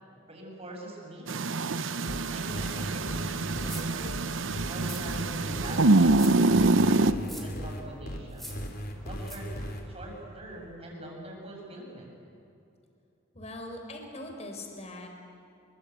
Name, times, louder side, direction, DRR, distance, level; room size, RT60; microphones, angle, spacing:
voice 1, 0.3-1.6 2.3-4.2 4.7-6.3 6.6-8.5 9.0-9.5 9.9-12.1, right 1 dB, 30° right, 0 dB, 7.1 m, -43 dB
sound 1, 1.3-7.1, right 2 dB, 75° right, 0.8 m, -25 dB
sound 2, 2.1-9.8, equal, 50° left, 3.4 m, -37 dB
sound 3, 3.6-4.1 4.8-5.4 6.1-6.5 7.2-7.6 8.3-8.7 9.2-9.4, equal, ahead, 4.0 m, -44 dB
voice 2, 13.3-15.1, left 1 dB, 35° left, 3 dB, 4.2 m, -41 dB
26.5 x 23.5 x 8.2 m, 2.7 s
head